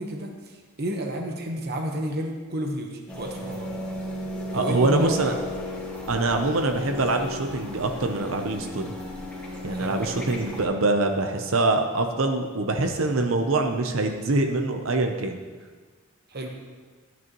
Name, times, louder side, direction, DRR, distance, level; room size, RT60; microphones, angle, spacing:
voice 1, 0.0-3.7 4.5-5.4 9.7-10.2 16.3-16.5, right 1 dB, 50° right, 2 dB, 1.1 m, -31 dB
sound 1, 3.1-10.6, left 1 dB, 5° left, 1.8 m, -35 dB
voice 2, 4.5-5.3 6.1-8.9 9.6-15.4, right 2 dB, 70° right, 5 dB, 0.8 m, -24 dB
13.5 x 9.3 x 3.0 m, 1.5 s
head